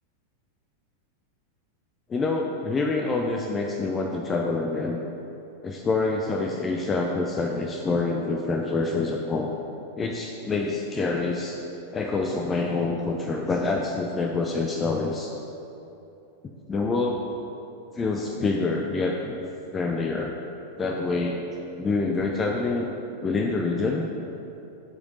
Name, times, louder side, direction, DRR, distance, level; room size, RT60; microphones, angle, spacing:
voice 1, 2.1-5.0 5.6-9.5 10.0-11.6 11.9-15.3 16.7-17.2 17.9-19.4 19.7-20.3 20.8-21.4 21.8-22.9 23.2-24.1, left 3 dB, 20° left, 1 dB, 0.5 m, -26 dB
7.8 x 5.0 x 5.4 m, 2.9 s
figure-of-eight pair, 90°, 0 cm